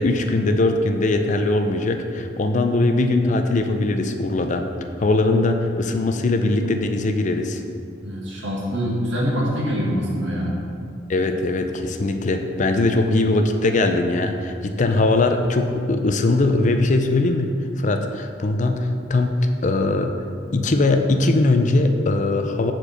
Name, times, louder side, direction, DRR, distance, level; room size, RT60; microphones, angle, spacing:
voice 1, 0.0-4.6 5.0-7.6 11.1-19.3 19.6-20.1 20.5-22.7, left 2 dB, 40° left, 6 dB, 0.5 m, -20 dB
voice 2, 8.0-10.5, equal, 70° right, -4 dB, 1.9 m, -24 dB
7.3 x 4.5 x 6.5 m, 2.4 s
head